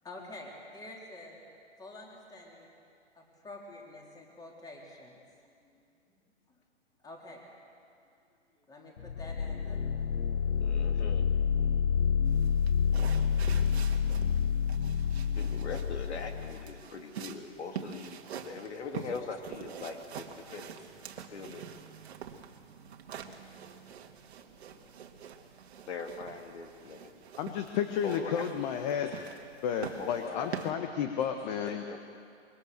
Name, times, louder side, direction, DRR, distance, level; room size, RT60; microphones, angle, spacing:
voice 1, 0.0-1.4 1.8-2.7 3.1-5.2 5.6-6.1 7.0-7.4 8.5-9.8 12.2-12.3 22.2-22.3 23.7-23.8 24.4-24.9 25.3-25.4, left 2 dB, 10° left, -1 dB, 3.7 m, -49 dB
sound 1, 9.0-16.8, left 7 dB, 85° left, 1.0 m, -28 dB
voice 2, 10.6-11.2 15.4-20.8 21.2-21.6 25.9-27.1 28.0-28.5 30.0-31.0 31.6-32.0, left 4 dB, 70° left, 4 dB, 2.7 m, -41 dB
sound 2, 12.3-30.7, right 7 dB, 60° right, 2.0 m, -46 dB
voice 3, 27.4-29.2 29.6-32.0, left 8 dB, 35° left, 6 dB, 1.5 m, -32 dB
25.5 x 23.0 x 6.8 m, 2.4 s
hypercardioid pair, 135°, 35 cm